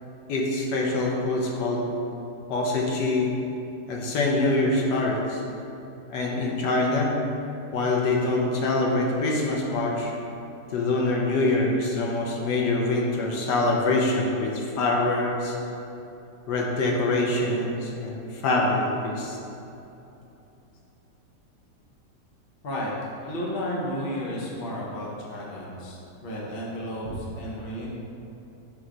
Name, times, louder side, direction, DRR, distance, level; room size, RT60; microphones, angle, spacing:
voice 1, 0.3-1.8 2.5-3.3 3.9-5.4 6.1-7.1 7.7-10.1 10.7-15.6 16.5-19.4, left 2 dB, 75° left, -1 dB, 1.3 m, -24 dB
voice 2, 23.3-27.9, equal, 40° left, -4 dB, 1.0 m, -32 dB
6.0 x 3.1 x 5.0 m, 2.9 s
omnidirectional pair, 1.9 m